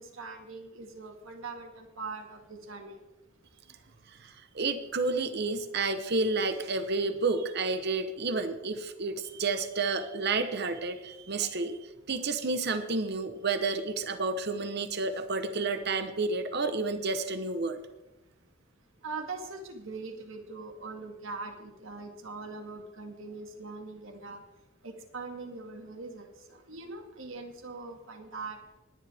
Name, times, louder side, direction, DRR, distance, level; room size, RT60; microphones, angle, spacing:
voice 1, 0.0-3.0 11.4-11.5 19.0-24.4 24.8-28.6, right 3 dB, 70° right, 4 dB, 1.9 m, -42 dB
voice 2, 4.5-11.8 12.1-17.8, right 3 dB, 50° right, 9 dB, 0.9 m, -30 dB
20.0 x 10.5 x 3.5 m, 1.0 s
head